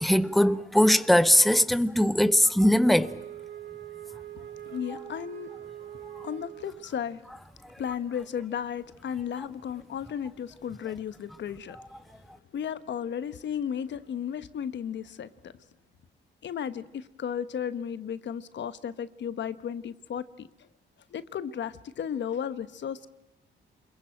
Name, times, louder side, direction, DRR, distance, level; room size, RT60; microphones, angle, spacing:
voice 1, 0.0-3.1, equal, ahead, 1.2 m, -20 dB
Wind instrument woodwind instrument, 2.8-7.0, right 12 dB, 70° right, 3.2 m, -43 dB
voice 2, 4.7-5.5 6.2-7.2 7.8-11.8 12.5-15.5 16.4-20.5 21.1-23.1, left 8 dB, 60° left, 1.2 m, -34 dB
27.5 x 22.5 x 9.0 m
cardioid pair, 90°, 20 cm